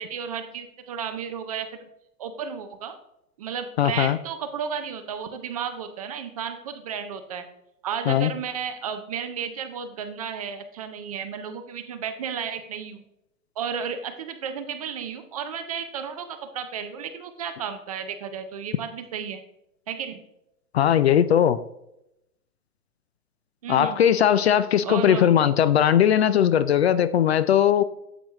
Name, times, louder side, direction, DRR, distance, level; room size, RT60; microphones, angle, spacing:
voice 1, 0.0-1.9 2.2-3.0 3.4-7.4 7.8-13.0 13.6-19.4 19.9-20.2 23.6-24.0 24.8-25.3, right 7 dB, 25° right, 0.4 m, -33 dB
voice 2, 3.8-4.2 8.1-8.3 20.7-21.6 23.7-27.8, left 10 dB, 45° left, 0.4 m, -19 dB
8.5 x 8.0 x 3.1 m
hypercardioid pair, 135°, 46 cm